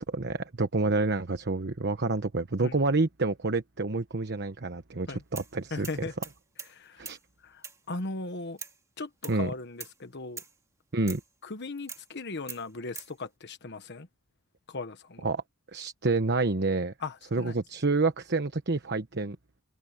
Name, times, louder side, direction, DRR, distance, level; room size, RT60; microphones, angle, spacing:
voice 1, 0.1-5.9 7.0-7.2 9.3-9.5 10.9-11.2 15.2-15.4 15.7-16.9 17.3-19.4, right 3 dB, 50° right, 1.1 m, -28 dB
sound 1, 5.4-5.5 5.8-6.8 7.0-7.2 7.6-7.8 8.6-8.8 9.2-9.4 9.8-10.0 10.4-10.6 11.1-11.3 11.9-12.1 12.5-13.1, right 5 dB, 15° right, 2.2 m, -42 dB
voice 2, 5.7-6.1 6.7-7.1 7.4-8.6 9.0-10.4 11.4-14.1 14.7-15.2 17.0-17.6, left 3 dB, 55° left, 1.3 m, -38 dB
head